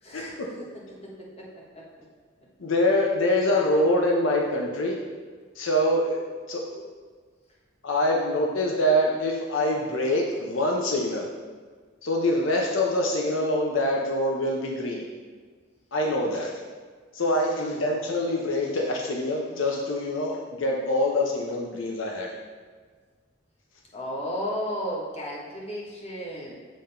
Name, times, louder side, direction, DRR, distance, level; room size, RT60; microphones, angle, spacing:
voice 1, 0.0-0.7 1.0-1.8 17.5-17.8 23.9-26.5, equal, 30° left, -4 dB, 1.4 m, -34 dB
voice 2, 2.6-5.0 5.6-6.2 6.5-6.8 7.8-11.3 12.0-15.0 15.9-16.5 17.1-22.3, left 1 dB, 75° left, -1 dB, 0.7 m, -25 dB
7.4 x 3.8 x 4.3 m, 1.5 s
head